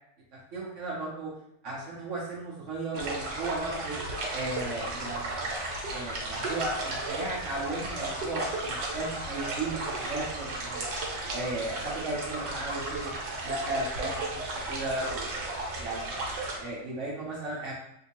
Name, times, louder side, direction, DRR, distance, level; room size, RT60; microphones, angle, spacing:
voice 1, 0.5-1.3 1.6-4.0 4.3-5.4 5.9-10.9 11.3-13.1 13.4-15.3 15.8-16.1 16.6-17.7, right 2 dB, 60° right, -4 dB, 0.8 m, -35 dB
sound 1, 2.9-16.6, right 2 dB, 80° right, 1.4 m, -34 dB
3.6 x 2.7 x 2.8 m, 0.79 s
omnidirectional pair, 1.9 m